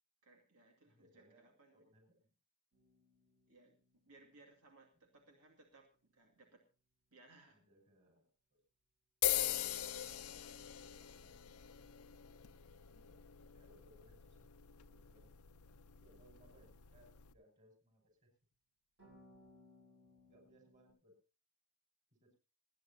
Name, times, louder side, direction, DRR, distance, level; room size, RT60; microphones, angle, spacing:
voice 1, 0.2-1.9 3.5-3.8 4.1-6.6 7.1-7.6 16.5-16.6, right 2 dB, 90° right, 2 dB, 2.3 m, -64 dB
voice 2, 0.8-2.3 7.5-8.6 12.9-13.2 13.5-14.6 14.9-15.3 16.0-18.3 20.3-21.2 22.1-22.4, right 1 dB, 35° right, 3 dB, 6.0 m, -68 dB
sound 1, 2.7-5.0 9.3-14.1 19.0-20.9, left 2 dB, 55° right, 5.9 m, -66 dB
sound 2, 9.2-17.3, left 12 dB, 75° left, 0.7 m, -42 dB
28.0 x 9.7 x 2.8 m, 0.33 s
head